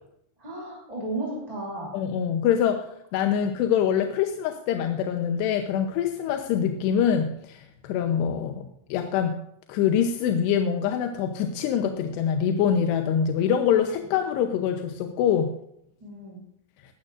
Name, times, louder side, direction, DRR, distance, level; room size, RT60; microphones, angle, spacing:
voice 1, 0.4-1.9 3.3-3.4 16.0-16.4, right 2 dB, 10° right, -4 dB, 2.6 m, -34 dB
voice 2, 1.9-9.4 9.7-15.5, left 8 dB, 75° left, 5 dB, 2.7 m, -24 dB
18.5 x 12.5 x 2.5 m, 0.75 s
omnidirectional pair, 5.3 m